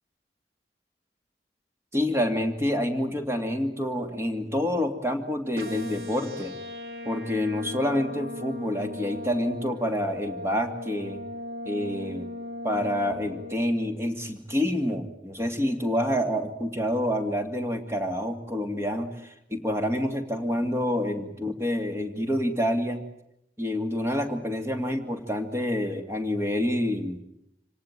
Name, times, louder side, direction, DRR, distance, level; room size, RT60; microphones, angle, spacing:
voice 1, 1.9-6.5 7.0-11.2 11.7-12.3 12.6-23.0 23.6-27.2, left 1 dB, 15° right, 6 dB, 2.4 m, -27 dB
sound 1, 5.6-13.6, left 2 dB, 60° right, 2.4 m, -38 dB
26.5 x 18.5 x 9.1 m, 0.81 s
head